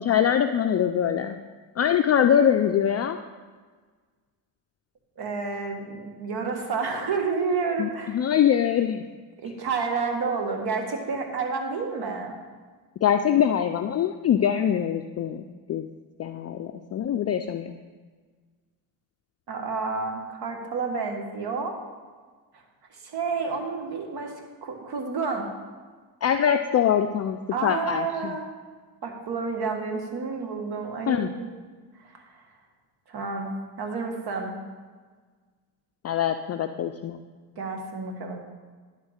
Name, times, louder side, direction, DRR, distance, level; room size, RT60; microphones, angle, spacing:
voice 1, 0.0-1.4 1.8-3.2 7.8-9.0 13.0-15.4 15.7-15.9 16.2-17.8 26.2-28.3 31.1-31.3 36.0-37.2, left 9 dB, 35° left, 7 dB, 0.4 m, -23 dB
voice 2, 5.2-8.2 9.4-12.3 19.5-21.7 23.0-24.3 24.6-25.5 27.5-28.5 29.0-31.5 33.1-33.5 33.8-34.5 37.6-38.4, right 4 dB, 60° right, 3 dB, 1.6 m, -30 dB
11.0 x 3.7 x 6.3 m, 1.5 s
supercardioid pair, 75°, 43 cm